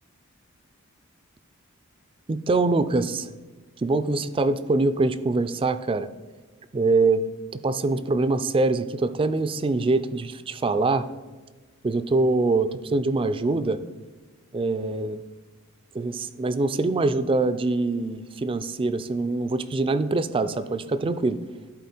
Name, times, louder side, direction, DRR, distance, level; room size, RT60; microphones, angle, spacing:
voice 1, 2.3-3.3 3.8-6.1 6.7-7.2 7.5-11.1 11.8-13.8 14.5-15.2 15.9-21.4, right 3 dB, 25° right, 13 dB, 0.4 m, -24 dB
11.5 x 4.5 x 4.3 m, 1.3 s
head